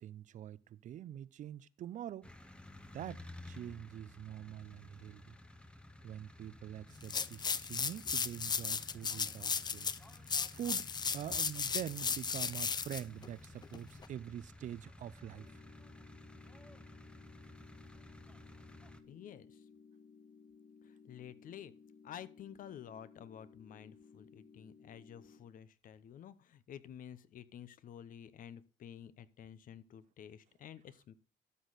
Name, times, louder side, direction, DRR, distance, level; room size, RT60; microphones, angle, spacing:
voice 1, 0.0-2.3 2.9-5.4 6.0-15.6, right 11 dB, 50° right, 0.4 m, -45 dB
sound 1, 2.2-19.0, left 1 dB, 5° left, 0.8 m, -54 dB
sound 2, 7.0-14.1, left 6 dB, 25° left, 0.5 m, -36 dB
sound 3, 15.4-25.4, left 5 dB, 75° left, 2.8 m, -59 dB
voice 2, 19.1-19.6 20.8-21.7 22.0-31.1, left 9 dB, 55° left, 0.8 m, -51 dB
12.5 x 6.4 x 4.0 m
cardioid pair, 110°, 17 cm